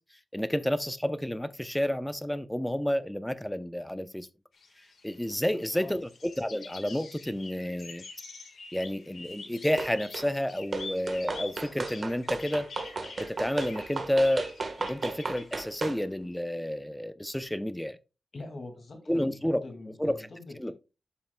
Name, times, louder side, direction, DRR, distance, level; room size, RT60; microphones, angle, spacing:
voice 1, 0.3-4.3 5.0-6.1 6.4-8.0 8.7-12.7 13.2-14.5 14.8-18.0 19.1-19.6 20.0-20.3 20.6-20.7, equal, 5° left, 0.6 m, -30 dB
sound 1, 4.5-15.8, left 4 dB, 80° left, 1.5 m, -46 dB
voice 2, 5.3-5.9 18.3-20.7, left 2 dB, 55° left, 2.1 m, -44 dB
sound 2, 9.8-10.3 10.7-16.0, right 3 dB, 55° right, 1.3 m, -35 dB
11.5 x 5.6 x 2.2 m
wide cardioid pair, 95°, 0 cm